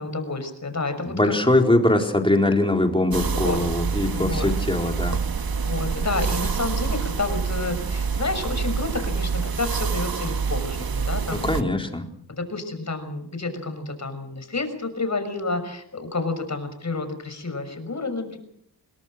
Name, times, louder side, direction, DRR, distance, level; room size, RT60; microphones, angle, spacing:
voice 1, 0.0-1.1 3.4-3.6 4.1-4.6 5.6-11.4 12.3-18.4, left 3 dB, 40° left, 9 dB, 6.2 m, -30 dB
voice 2, 1.1-5.2 11.4-12.1, left 1 dB, 10° left, 3 dB, 4.2 m, -21 dB
sound 1, 3.1-11.6, right 5 dB, 60° right, 1.8 m, -27 dB
28.5 x 20.5 x 6.5 m, 0.68 s
wide cardioid pair, 90°, 41 cm